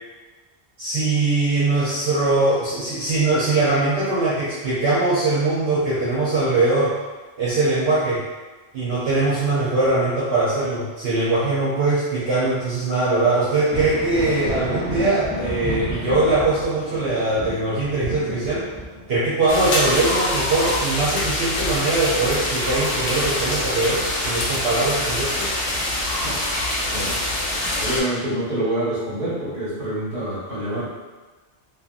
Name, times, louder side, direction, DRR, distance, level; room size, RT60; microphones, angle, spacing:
voice 1, 0.8-6.9 7.4-8.2 8.7-18.7 19.1-25.5, right 2 dB, 65° right, -10 dB, 0.9 m, -21 dB
Thunder, 13.7-22.9 23.3-24.5 26.0-26.1 26.9-27.1, equal, 15° right, 0.4 m, -33 dB
Light rain in the forest, 19.5-28.0, left 1 dB, 65° left, 0.9 m, -24 dB
voice 2, 27.8-30.8, right 1 dB, 50° right, -10 dB, 1.5 m, -26 dB
2.8 x 2.3 x 2.5 m, 1.3 s
omnidirectional pair, 1.1 m